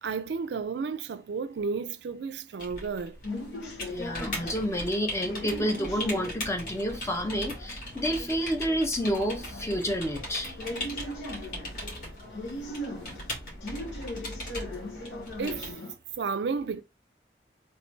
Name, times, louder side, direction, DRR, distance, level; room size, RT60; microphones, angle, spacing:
voice 1, 0.0-3.2 14.7-14.9 15.4-15.7 16.2-16.8, right 5 dB, 75° right, 0.4 m, -32 dB
Teclado digitar, 2.6-15.7, left 1 dB, 50° left, 1.8 m, -40 dB
sound 1, 3.2-15.9, left 1 dB, 85° left, 1.3 m, -40 dB
voice 2, 3.8-10.6, equal, 15° left, 0.6 m, -29 dB
3.2 x 3.0 x 3.1 m
head